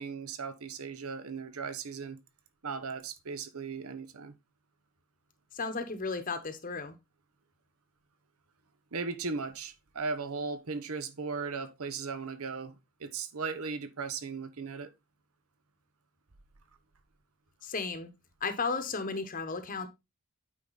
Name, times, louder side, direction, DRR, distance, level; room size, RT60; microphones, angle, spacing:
voice 1, 0.0-2.2 2.6-4.3 8.9-12.7 13.0-14.9, right 4 dB, 80° right, 1.0 m, -37 dB
voice 2, 5.5-6.9 17.6-18.1 18.4-19.9, left 4 dB, 40° left, 0.9 m, -34 dB
8.9 x 4.9 x 4.0 m
head